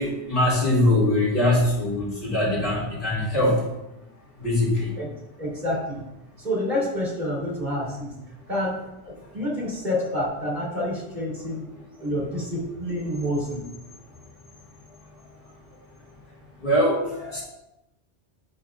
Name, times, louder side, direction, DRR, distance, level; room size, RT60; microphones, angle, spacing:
voice 1, 0.0-3.6 4.4-4.9 16.6-17.4, left 1 dB, 50° left, -7 dB, 2.8 m, -22 dB
voice 2, 5.4-6.0 6.4-8.1 8.5-8.7 9.0-11.7 12.0-13.6, left 1 dB, 40° right, -6 dB, 2.8 m, -28 dB
9.4 x 6.9 x 2.4 m, 0.91 s
omnidirectional pair, 1.1 m